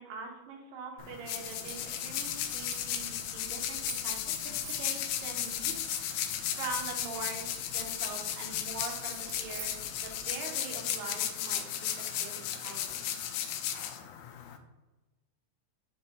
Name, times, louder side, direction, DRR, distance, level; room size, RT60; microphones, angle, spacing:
voice 1, 0.0-9.7 10.0-13.1, right 4 dB, 80° right, 1 dB, 2.7 m, -43 dB
sound 1, 1.0-14.6, left 10 dB, 80° left, 2.0 m, -35 dB
sound 2, 1.3-10.3, right 4 dB, 65° right, 2.4 m, -49 dB
6.8 x 2.7 x 5.1 m, 1.1 s
omnidirectional pair, 4.0 m